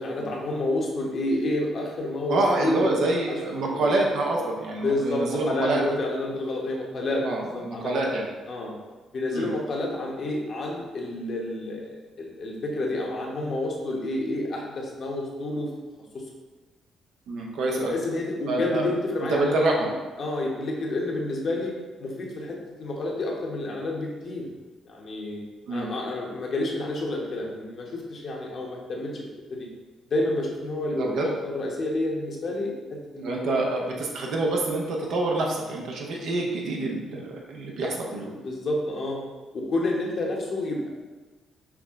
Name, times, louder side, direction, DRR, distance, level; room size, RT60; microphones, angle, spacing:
voice 1, 0.0-3.1 3.6-3.9 4.8-7.2 7.5-7.9 8.5-8.7 9.1-15.7 17.7-19.9 20.2-21.7 22.0-24.5 24.9-25.4 25.7-29.7 30.1-33.6 38.4-39.2 39.5-40.9, left 2 dB, 55° left, -1 dB, 0.9 m, -29 dB
voice 2, 2.3-5.8 7.2-8.3 9.3-9.5 17.3-18.0 18.5-18.9 19.3-19.9 25.7-25.9 31.0-31.3 33.2-38.3, right 2 dB, 75° right, -1 dB, 0.7 m, -26 dB
5.9 x 2.2 x 3.6 m, 1.2 s
cardioid pair, 90°, 0 cm